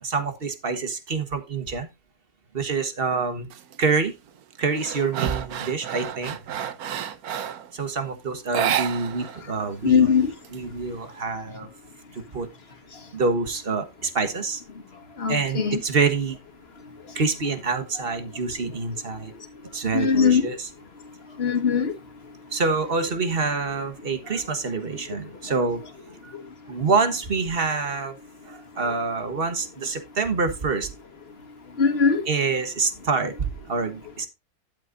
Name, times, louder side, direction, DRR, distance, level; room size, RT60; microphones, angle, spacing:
voice 1, 0.0-1.9 2.5-3.5 3.8-4.1 4.6-6.4 7.7-11.7 12.1-12.5 13.1-14.6 15.3-16.4 17.1-19.3 19.7-20.7 22.5-25.8 26.2-26.3 26.7-28.2 28.4-30.9 32.2-34.3, right 4 dB, 40° right, 1.6 m, -26 dB
sound 1, 3.5-3.9 4.3-7.7 8.4-9.4 9.7-9.8 10.2-11.1, right 9 dB, 75° right, 1.4 m, -30 dB
voice 2, 9.8-10.3 15.2-15.8 19.9-20.5 21.4-21.9 31.8-32.2, left 6 dB, 40° left, 1.8 m, -20 dB
12.0 x 8.8 x 2.6 m
omnidirectional pair, 1.6 m